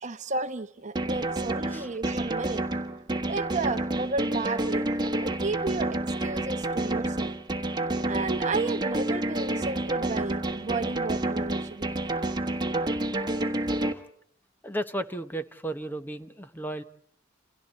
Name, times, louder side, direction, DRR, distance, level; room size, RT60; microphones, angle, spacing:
voice 1, 0.0-2.6 3.3-7.3 8.1-11.9 12.9-13.0, right 3 dB, 40° right, 1.0 m, -33 dB
sound 1, 1.0-13.9, right 2 dB, 20° right, 1.4 m, -29 dB
voice 2, 14.6-16.8, right 1 dB, 10° left, 1.1 m, -34 dB
29.0 x 28.0 x 4.2 m
head